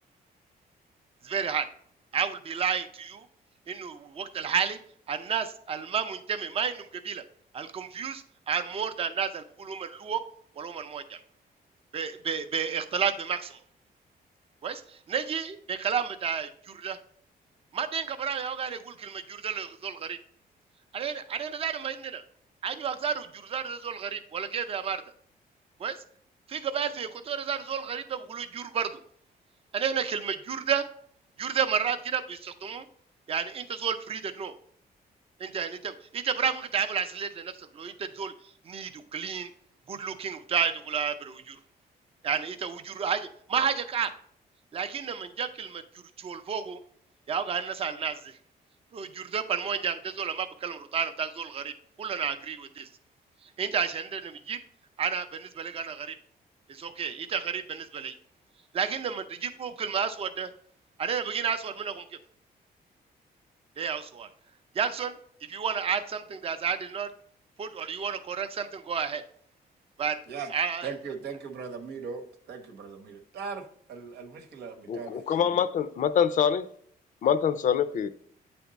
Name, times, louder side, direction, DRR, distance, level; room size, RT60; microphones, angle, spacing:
voice 1, 1.2-1.7 2.1-3.3 3.7-4.8 5.1-7.2 7.5-10.2 10.6-11.2 11.9-13.6 14.6-17.0 17.7-20.2 20.9-22.2 22.6-25.0 25.8-26.0 26.5-29.0 29.7-30.8 31.4-32.8 33.3-34.5 35.4-38.3 38.6-39.5 39.9-41.6 42.2-44.1 44.7-45.8 46.2-46.8 47.3-48.4 48.9-52.9 53.4-54.6 55.0-56.2 56.7-58.1 58.7-60.5 61.0-62.0 63.8-64.3 64.7-65.1 65.4-67.1 67.6-69.2 70.0-70.2 70.5-70.9, right 7 dB, 35° right, 0.5 m, -31 dB
voice 2, 70.8-72.2 72.5-73.6 73.9-75.2, right 5 dB, 90° right, 1.0 m, -38 dB
voice 3, 74.9-76.7 77.2-78.1, left 8 dB, 50° left, 0.4 m, -25 dB
8.7 x 3.4 x 4.0 m
cardioid pair, 155°, 17 cm